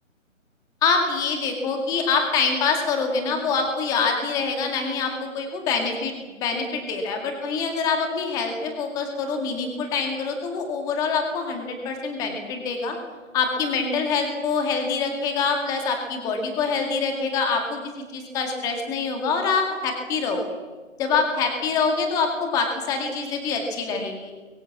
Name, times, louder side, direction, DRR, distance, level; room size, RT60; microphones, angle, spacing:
voice 1, 0.8-6.1 6.4-13.0 13.3-17.8 18.1-20.4 21.0-24.3, left 5 dB, 10° left, 3 dB, 2.0 m, -25 dB
25.0 x 23.0 x 7.2 m, 1.3 s
hypercardioid pair, 165°, 40 cm